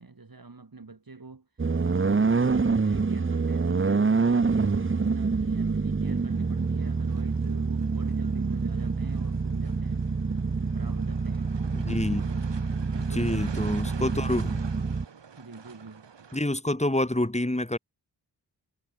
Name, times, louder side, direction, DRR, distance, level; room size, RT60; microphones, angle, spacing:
voice 1, 0.0-10.1 10.7-11.6 12.1-14.4 15.4-16.1, right 3 dB, 55° right, 4.3 m, -46 dB
sound 1, 1.6-15.0, right 4 dB, 30° right, 0.8 m, -26 dB
sound 2, 6.0-16.4, right 6 dB, 90° right, 1.8 m, -48 dB
voice 2, 11.7-12.2 13.1-14.6 16.3-17.8, left 1 dB, 15° left, 2.9 m, -27 dB
wide cardioid pair, 50°, 42 cm